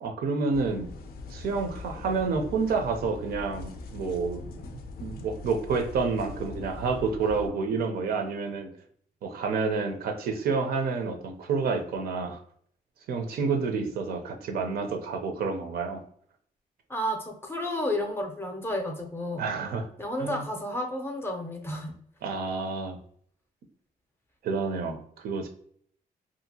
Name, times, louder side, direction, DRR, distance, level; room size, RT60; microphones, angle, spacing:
voice 1, 0.0-0.9 1.3-8.7 9.2-12.4 13.1-16.0 19.4-19.9 20.2-20.4 22.2-23.0 24.4-25.5, right 4 dB, 85° right, 5 dB, 0.5 m, -29 dB
sound 1, 0.5-7.5, left 3 dB, 80° left, 0.4 m, -42 dB
voice 2, 16.9-19.4 20.0-21.9, left 1 dB, 15° left, 3 dB, 0.5 m, -31 dB
2.7 x 2.5 x 2.7 m, 0.62 s
wide cardioid pair, 145°, 15 cm